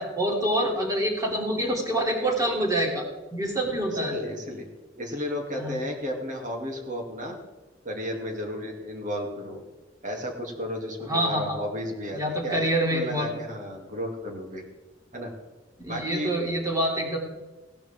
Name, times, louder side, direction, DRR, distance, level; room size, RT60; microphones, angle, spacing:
voice 1, 0.0-3.0 3.3-4.2 5.6-5.8 11.1-11.6 12.1-13.3 15.8-17.2, right 1 dB, 20° right, 0 dB, 3.1 m, -26 dB
voice 2, 4.0-4.6 5.0-7.4 7.8-9.6 10.0-14.6 15.1-15.3 15.9-16.3, equal, 45° right, 1 dB, 2.7 m, -33 dB
17.0 x 11.5 x 3.7 m, 1.2 s
head